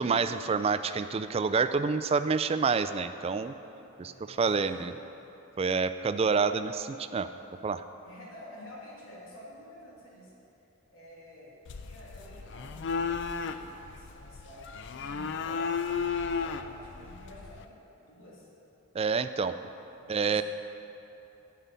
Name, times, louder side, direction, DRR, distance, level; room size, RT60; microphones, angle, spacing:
voice 1, 0.0-3.5 4.0-4.9 5.6-6.7 7.0-7.3 7.6-7.8 19.0-19.6 20.1-20.4, right 5 dB, 30° right, 11 dB, 0.3 m, -27 dB
voice 2, 3.9-5.0 6.3-6.5 8.0-10.3 10.9-18.5 20.0-20.4, left 1 dB, 80° left, -5 dB, 2.8 m, -50 dB
sound 1, 11.7-17.6, left 5 dB, 60° left, 0.4 m, -34 dB
11.0 x 5.7 x 8.2 m, 3.0 s
head